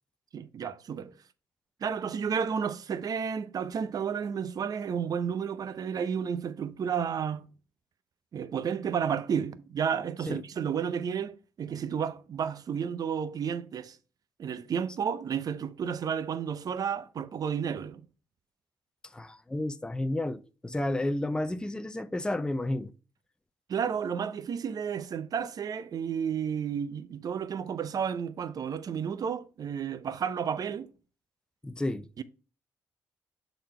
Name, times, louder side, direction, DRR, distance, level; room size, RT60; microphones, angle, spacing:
voice 1, 0.3-1.2 1.8-7.5 8.3-14.0 14.4-18.1 23.7-30.9 32.2-32.3, right 7 dB, 55° right, 0.6 m, -32 dB
voice 2, 19.1-22.9 31.6-32.1, left 1 dB, 10° left, 0.6 m, -31 dB
6.7 x 3.9 x 4.4 m
supercardioid pair, 60°, 8 cm